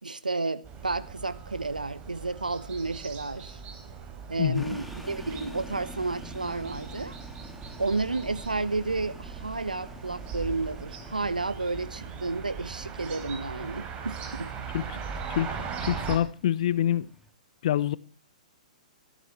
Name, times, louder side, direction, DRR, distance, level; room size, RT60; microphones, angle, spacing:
voice 1, 0.0-3.6 4.3-7.1 7.8-14.5, right 3 dB, 90° right, 1.3 m, -31 dB
sound 1, 0.6-16.2, right 6 dB, 25° right, 3.8 m, -40 dB
voice 2, 4.4-4.7 14.7-14.8 15.3-15.5 15.8-17.1 17.6-18.0, left 11 dB, 55° left, 0.9 m, -26 dB
sound 2, 4.5-17.3, equal, ahead, 2.5 m, -48 dB
18.0 x 13.5 x 4.5 m
figure-of-eight pair, 115°, 4 cm